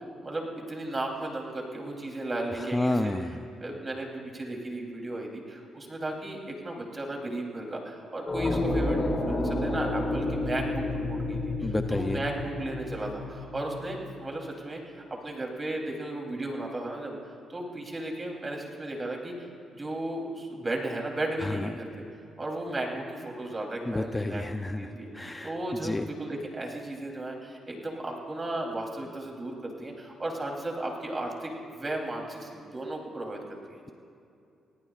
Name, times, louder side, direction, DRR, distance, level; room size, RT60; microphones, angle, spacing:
voice 1, 0.0-3.1 3.6-19.3 19.8-22.0 22.4-24.4 24.7-33.8, right 1 dB, 30° right, 0 dB, 3.3 m, -35 dB
voice 2, 2.5-3.4 11.6-12.2 21.4-21.7 23.9-25.6 25.8-26.1, left 2 dB, 15° left, 8 dB, 0.5 m, -30 dB
sound 1, 8.3-14.1, left 2 dB, 30° left, 2.9 m, -30 dB
26.5 x 18.0 x 2.5 m, 2.6 s
cardioid pair, 75°, 0 cm